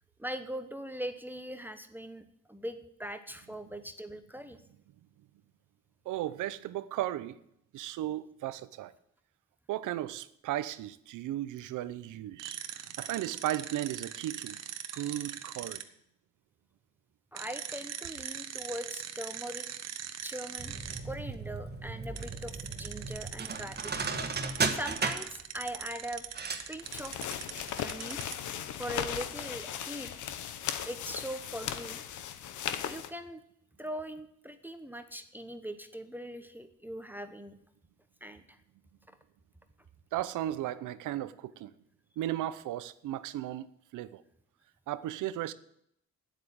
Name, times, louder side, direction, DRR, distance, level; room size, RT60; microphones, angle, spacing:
voice 1, 0.2-4.6 14.9-15.1 17.3-19.7 20.2-20.7 21.0-23.9 24.7-26.4 26.7-27.2 27.8-28.2 28.5-30.3 30.8-32.0 32.9-33.4 33.8-37.6 38.2-38.6, equal, 5° right, 8 dB, 1.0 m, -41 dB
voice 2, 6.1-7.3 7.7-8.9 9.7-14.6 14.9-15.8 40.1-41.7 42.2-44.2 44.9-45.5, right 13 dB, 85° right, 15 dB, 0.7 m, -35 dB
sound 1, 12.4-15.8 17.3-21.0 22.2-28.4, right 9 dB, 60° right, 1.1 m, -41 dB
sound 2, 20.6-27.7 28.0-28.1, right 4 dB, 35° right, 1.5 m, -36 dB
sound 3, 26.8-33.1, left 9 dB, 75° left, 1.0 m, -37 dB
9.4 x 8.1 x 8.6 m, 0.74 s
cardioid pair, 90°, 30 cm